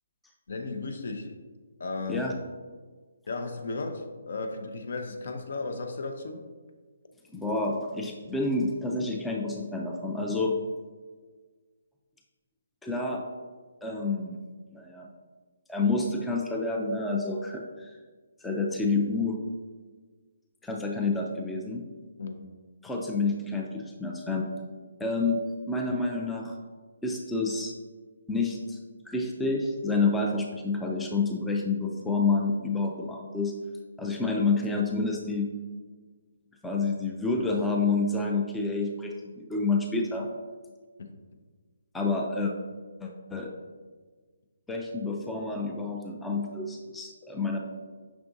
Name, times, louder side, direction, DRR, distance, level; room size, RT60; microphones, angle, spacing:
voice 1, 0.5-1.4 1.8-2.3 3.3-6.4 22.2-22.5 41.0-41.1, left 3 dB, 55° left, 5 dB, 0.5 m, -35 dB
voice 2, 7.3-10.6 12.8-13.2 13.8-14.4 14.7-15.1 15.7-17.9 18.4-19.4 20.6-21.8 22.8-24.5 25.0-26.6 27.0-27.7 28.3-28.8 29.1-33.5 34.0-35.5 36.6-40.3 41.9-42.5 43.0-43.5 44.7-47.6, left 3 dB, 5° left, 0 dB, 0.3 m, -29 dB
6.0 x 3.4 x 2.6 m, 1.4 s
figure-of-eight pair, 140°, 0 cm